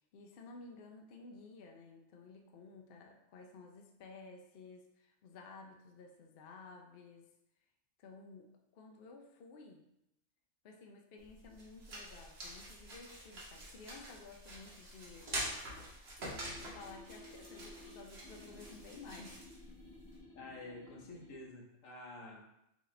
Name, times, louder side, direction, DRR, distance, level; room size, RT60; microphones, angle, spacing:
voice 1, 0.1-7.3 8.0-9.9 10.6-16.1 16.6-19.5, left 3 dB, 60° left, 2 dB, 0.7 m, -54 dB
sound 1, 11.2-20.2, right 1 dB, 55° right, 1.3 m, -46 dB
sound 2, 16.2-21.4, left 2 dB, 25° left, 1.0 m, -55 dB
voice 2, 20.3-22.5, left 2 dB, 80° left, 0 dB, 1.2 m, -49 dB
4.8 x 2.6 x 3.1 m, 0.83 s
omnidirectional pair, 1.3 m